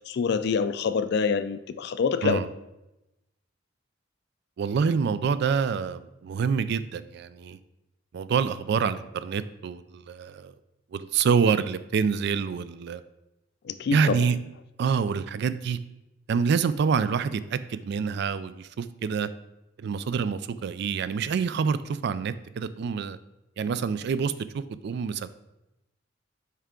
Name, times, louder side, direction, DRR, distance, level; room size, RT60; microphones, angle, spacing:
voice 1, 0.1-2.4 13.7-14.2, left 5 dB, 55° left, 12 dB, 0.3 m, -26 dB
voice 2, 4.6-7.6 8.1-10.5 10.9-13.0 13.9-14.4 14.8-15.8 16.3-19.3 19.8-23.2 23.6-25.3, right 6 dB, 60° right, 14 dB, 0.3 m, -27 dB
5.6 x 4.7 x 3.7 m, 0.92 s
head